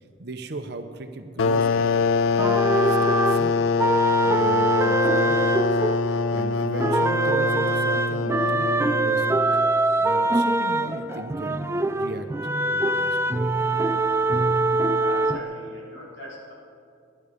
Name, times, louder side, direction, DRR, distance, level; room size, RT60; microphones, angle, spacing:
voice 1, 0.2-1.8 2.7-3.7 4.2-5.8 6.1-9.6 10.0-12.3 12.7-13.2, right 2 dB, 50° right, 7 dB, 0.9 m, -37 dB
sound 1, 1.4-9.8, left 4 dB, 80° left, 0.4 m, -24 dB
sound 2, 2.4-6.5 6.8-15.4, right 2 dB, 15° right, 0.3 m, -23 dB
voice 2, 14.9-16.5, left 1 dB, 55° left, -5 dB, 3.9 m, -40 dB
18.0 x 11.0 x 5.1 m, 2.4 s
head